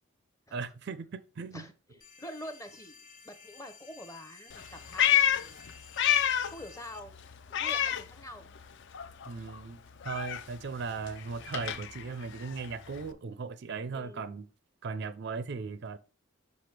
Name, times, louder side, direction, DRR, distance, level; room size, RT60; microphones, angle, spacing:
voice 1, 0.5-1.7 9.3-14.5 14.8-16.0, right 4 dB, 50° right, 0.4 m, -38 dB
voice 2, 1.5-5.6 6.5-7.1 7.5-8.5 13.9-14.4, left 1 dB, 15° left, 0.6 m, -46 dB
sound 1, 2.0-7.0, left 5 dB, 35° left, 1.4 m, -53 dB
Meow, 4.5-6.7 7.0-8.7 8.9-13.1, left 10 dB, 55° left, 0.4 m, -30 dB
5.9 x 5.4 x 3.3 m
head